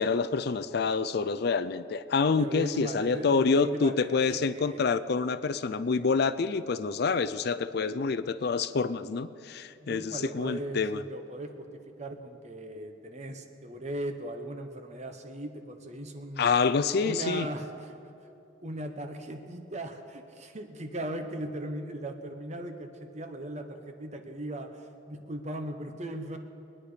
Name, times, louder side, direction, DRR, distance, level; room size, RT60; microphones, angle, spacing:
voice 1, 0.0-11.0 16.4-17.5, left 4 dB, 60° left, 14 dB, 0.4 m, -27 dB
voice 2, 2.3-5.0 9.8-11.7 12.0-16.4 17.0-17.9 18.6-26.4, right 1 dB, 40° right, 6 dB, 1.1 m, -38 dB
22.0 x 9.9 x 5.0 m, 2.7 s
head